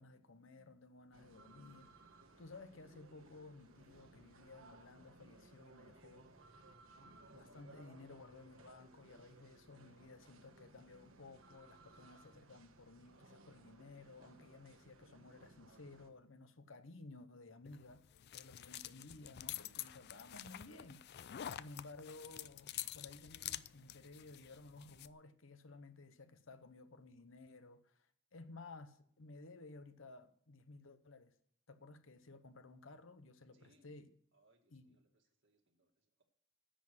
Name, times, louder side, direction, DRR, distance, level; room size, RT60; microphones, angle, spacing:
voice 1, 0.0-1.9 2.4-6.5 6.9-18.0 18.3-21.1 21.5-31.3 31.7-34.1 34.7-34.9, left 3 dB, 70° left, 0.9 m, -56 dB
sound 1, 1.1-16.1, right 2 dB, 85° right, 1.3 m, -62 dB
sound 2, 17.7-25.1, left 12 dB, 55° left, 0.4 m, -48 dB
voice 2, 33.5-33.9 34.3-36.2, right 1 dB, 65° right, 2.0 m, -74 dB
10.0 x 7.5 x 7.8 m
head